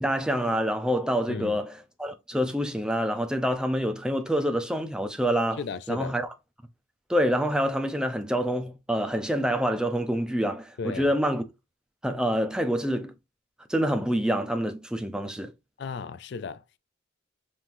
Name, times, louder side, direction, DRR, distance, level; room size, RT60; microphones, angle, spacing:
voice 1, 0.0-5.6 5.9-6.3 7.1-11.4 12.0-13.1 13.7-15.5, equal, 5° right, 0.5 m, -26 dB
voice 2, 1.3-1.6 5.6-6.2 10.8-11.1 15.8-16.6, left 5 dB, 60° left, 0.4 m, -35 dB
5.5 x 3.1 x 2.6 m
head